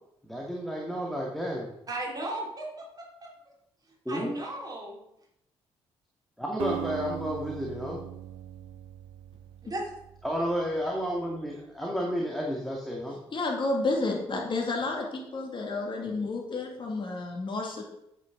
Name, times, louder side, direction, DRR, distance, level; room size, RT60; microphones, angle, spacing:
voice 1, 0.2-1.7 4.1-4.3 6.4-8.0 10.2-13.2, equal, ahead, -2 dB, 2.1 m, -31 dB
voice 2, 1.9-3.3 4.1-5.0 9.6-10.0, right 1 dB, 30° right, -1 dB, 3.2 m, -36 dB
Acoustic guitar, 6.6-10.7, right 13 dB, 60° right, 0.5 m, -39 dB
voice 3, 13.3-17.8, left 2 dB, 35° left, 0 dB, 2.4 m, -30 dB
9.5 x 8.5 x 3.9 m, 0.80 s
figure-of-eight pair, 40°, 14 cm